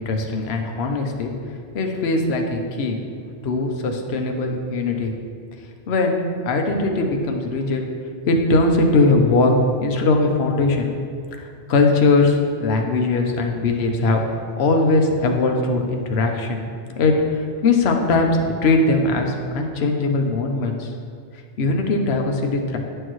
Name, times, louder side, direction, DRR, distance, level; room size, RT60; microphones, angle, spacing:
voice 1, 0.0-1.3 1.7-3.0 3.4-5.1 5.9-7.8 8.3-10.9 11.4-14.2 14.6-16.6 17.0-20.9 21.6-22.8, left 3 dB, 55° left, 3 dB, 1.0 m, -20 dB
9.7 x 6.6 x 3.1 m, 2.4 s
omnidirectional pair, 1.3 m